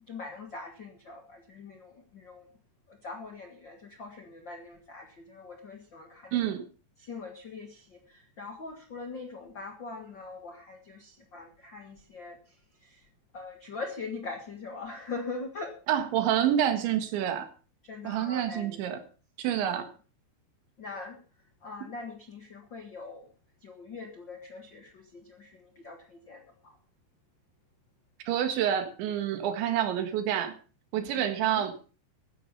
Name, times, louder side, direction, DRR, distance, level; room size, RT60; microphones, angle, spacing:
voice 1, 0.1-2.5 2.9-6.5 7.0-13.0 13.3-15.8 17.8-18.8 19.6-19.9 20.8-21.2 21.6-23.3 23.6-26.8 31.1-31.6, left 3 dB, 70° left, 4 dB, 1.0 m, -42 dB
voice 2, 6.3-6.7 15.9-17.5 18.0-19.0 19.4-19.9 28.3-30.6 30.9-31.7, right 10 dB, 90° right, 8 dB, 4.1 m, -28 dB
15.0 x 10.5 x 5.5 m, 0.37 s
omnidirectional pair, 5.1 m